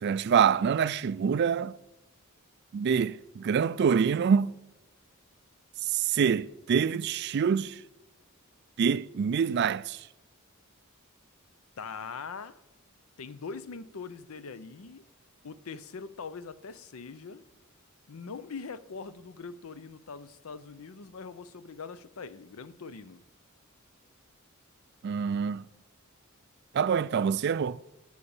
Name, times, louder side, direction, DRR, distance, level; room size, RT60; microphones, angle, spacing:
voice 1, 0.0-1.7 2.7-4.5 5.8-7.8 8.8-10.1 25.0-25.6 26.7-27.8, right 7 dB, 50° right, 0.3 m, -26 dB
voice 2, 11.8-12.6 13.2-15.0 15.4-17.4 18.1-23.2, left 5 dB, 85° left, 0.6 m, -42 dB
11.0 x 6.3 x 7.1 m
head